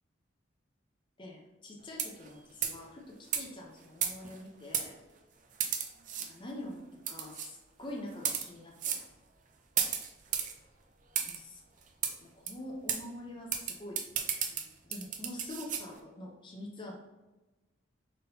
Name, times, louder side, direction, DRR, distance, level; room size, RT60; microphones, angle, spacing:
voice 1, 1.2-4.9 6.3-9.0 11.3-11.6 12.2-14.0 14.8-16.9, left 1 dB, 25° left, -1 dB, 0.6 m, -45 dB
sound 1, 1.9-2.3 2.6-2.8 3.3-3.4 4.0-4.4 4.7-4.9 5.6-6.3 7.1-7.5 8.1-8.5 8.8-9.0 9.8-10.5 11.2-11.4 12.0-12.1 12.5-12.6 12.9-13.0 13.5-15.8, right 8 dB, 40° right, 0.4 m, -33 dB
4.0 x 3.7 x 2.7 m, 1.1 s
head